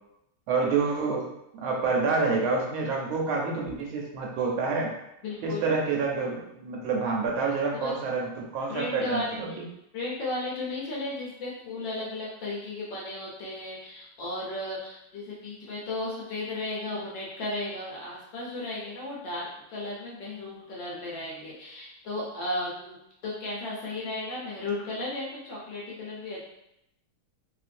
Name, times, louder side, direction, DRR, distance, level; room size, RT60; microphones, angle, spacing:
voice 1, 0.5-1.2 1.5-4.9 5.4-9.5, right 4 dB, 75° right, -1 dB, 1.4 m, -28 dB
voice 2, 5.2-5.6 7.8-8.0 8.7-9.4 9.9-23.0 23.2-26.4, left 2 dB, 65° left, -5 dB, 1.3 m, -34 dB
3.3 x 2.5 x 2.5 m, 0.83 s
omnidirectional pair, 2.4 m